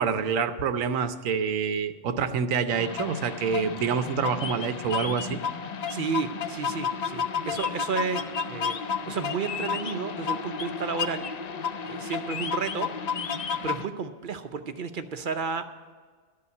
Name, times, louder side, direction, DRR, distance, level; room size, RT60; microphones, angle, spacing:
voice 1, 0.0-5.4, right 6 dB, 80° right, 11 dB, 1.1 m, -27 dB
sound 1, 2.7-13.9, left 6 dB, 50° left, 0.5 m, -32 dB
voice 2, 5.9-8.8 9.1-11.3 11.9-12.9 13.6-15.6, right 5 dB, 50° right, 8 dB, 0.7 m, -32 dB
13.0 x 5.7 x 9.3 m, 1.5 s
omnidirectional pair, 1.3 m